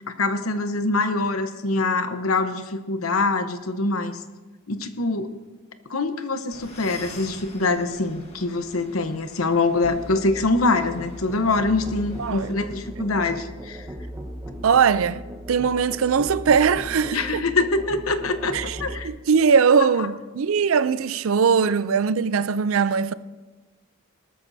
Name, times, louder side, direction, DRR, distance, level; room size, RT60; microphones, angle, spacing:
voice 1, 0.1-4.2 4.7-5.4 5.9-13.9 17.1-19.1 19.7-20.1, left 3 dB, 90° left, 1.0 m, -24 dB
sound 1, 6.5-12.6, left 2 dB, 30° left, 1.7 m, -45 dB
Musical instrument, 9.8-19.1, equal, 15° right, 1.1 m, -37 dB
voice 2, 12.2-12.5 14.6-15.2 15.5-17.5 18.5-23.1, right 6 dB, 75° right, 0.5 m, -20 dB
19.0 x 13.0 x 2.7 m
head